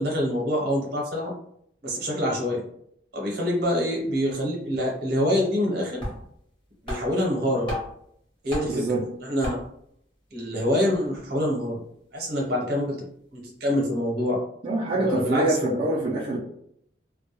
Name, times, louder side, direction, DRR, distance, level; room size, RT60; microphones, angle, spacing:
voice 1, 0.0-1.3 1.8-2.7 3.1-6.0 6.8-7.8 8.4-9.6 10.3-11.8 12.1-13.0 13.3-14.4 14.9-15.8, left 1 dB, 60° right, -1 dB, 0.8 m, -26 dB
sound 1, 4.0-4.1 4.3-4.5 5.6-5.7 6.0-6.5 6.9-8.1 8.5-8.9 9.4-9.9, left 1 dB, 25° left, 0.9 m, -34 dB
voice 2, 8.7-9.1 14.6-16.4, right 2 dB, 30° right, -6 dB, 0.4 m, -25 dB
2.2 x 2.2 x 2.9 m, 0.70 s
head